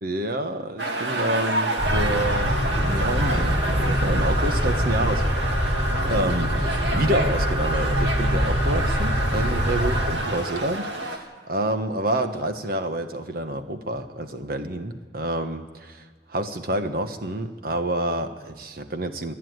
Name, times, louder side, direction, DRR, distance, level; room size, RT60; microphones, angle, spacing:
voice 1, 0.0-5.3 6.0-19.3, right 1 dB, 60° right, 8 dB, 1.3 m, -28 dB
sound 1, 0.8-11.2, right 2 dB, 85° right, 2.2 m, -29 dB
sound 2, 1.8-10.1, equal, 10° right, 4.2 m, -24 dB
26.5 x 10.0 x 9.6 m, 1.4 s
head